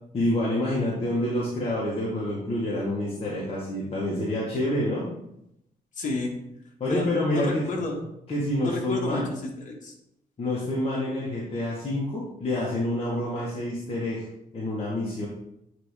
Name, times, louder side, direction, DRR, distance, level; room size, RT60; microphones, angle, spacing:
voice 1, 0.1-5.1 6.8-7.6 8.3-9.3 10.4-14.2 14.5-15.3, left 1 dB, 40° left, -6 dB, 1.5 m, -27 dB
voice 2, 6.0-6.3 6.9-8.0 8.6-9.9, left 2 dB, 55° left, 0 dB, 1.5 m, -31 dB
8.9 x 3.5 x 3.3 m, 0.79 s
cardioid pair, 110°, 15 cm